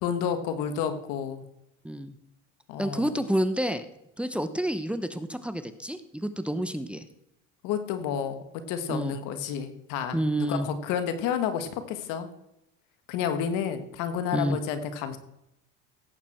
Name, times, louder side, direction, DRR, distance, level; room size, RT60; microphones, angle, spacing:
voice 1, 0.0-1.4 2.7-3.1 7.6-12.3 13.1-15.2, left 8 dB, 75° left, 9 dB, 1.7 m, -30 dB
voice 2, 2.8-3.9 4.2-7.0 8.9-9.2 10.1-10.7 14.3-14.6, right 1 dB, 5° right, 10 dB, 0.9 m, -29 dB
17.0 x 8.4 x 4.5 m, 0.83 s
supercardioid pair, 100°, 32 cm